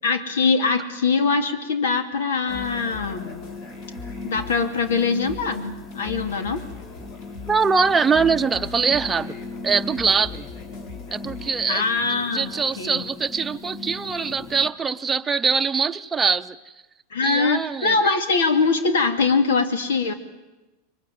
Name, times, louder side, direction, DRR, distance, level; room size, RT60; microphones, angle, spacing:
voice 1, 0.0-3.4 4.2-6.6 11.7-13.1 17.1-20.1, left 4 dB, 90° left, 2.6 m, -22 dB
sound 1, 2.5-11.5, left 4 dB, 55° left, 4.7 m, -41 dB
sound 2, 2.5-14.7, left 3 dB, 30° left, 1.9 m, -38 dB
voice 2, 7.5-9.3 9.6-10.5 11.1-11.8 12.1-16.7 17.2-18.2, right 5 dB, 15° right, 0.8 m, -23 dB
23.0 x 21.0 x 9.4 m
supercardioid pair, 125°, 0 cm